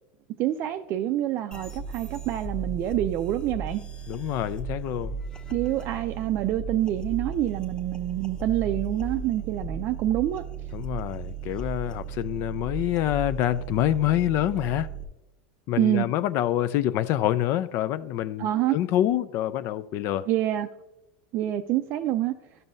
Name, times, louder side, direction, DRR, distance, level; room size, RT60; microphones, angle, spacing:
voice 1, 0.4-3.8 5.5-10.5 15.8-16.1 18.4-18.8 20.3-20.7 21.3-22.3, right 13 dB, 45° right, 0.4 m, -26 dB
sound 1, 1.5-15.0, right 5 dB, 15° left, 1.0 m, -36 dB
voice 2, 4.1-5.1 10.7-14.9 15.7-20.3, left 12 dB, 50° left, 0.4 m, -26 dB
12.5 x 5.4 x 2.6 m
hypercardioid pair, 105°, 5 cm